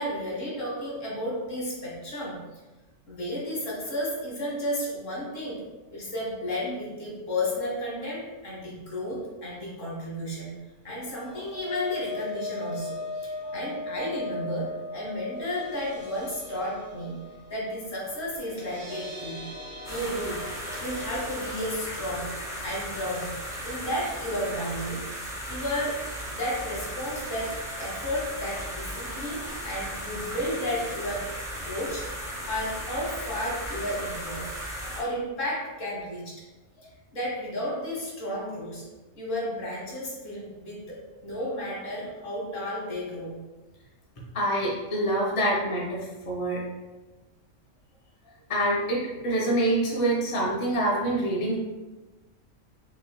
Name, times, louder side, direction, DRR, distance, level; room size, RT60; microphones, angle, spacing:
voice 1, 0.0-2.4 3.1-5.6 5.9-10.5 10.8-17.2 17.5-19.4 19.9-20.5 20.8-22.3 22.6-23.3 23.6-25.0 25.5-26.0 26.3-31.3 31.6-32.1 32.5-34.5 34.9-36.4 37.1-38.8 39.1-43.4, left 1 dB, 70° left, -4 dB, 1.7 m, -32 dB
sound 1, 11.0-25.2 25.5-25.8 26.1-26.2, left 2 dB, 50° right, 1.2 m, -40 dB
sound 2, 19.8-35.0, equal, 5° right, 0.5 m, -36 dB
voice 2, 44.3-46.6 48.5-51.6, right 1 dB, 30° left, -3 dB, 0.7 m, -26 dB
5.3 x 3.0 x 2.2 m, 1.2 s
omnidirectional pair, 1.4 m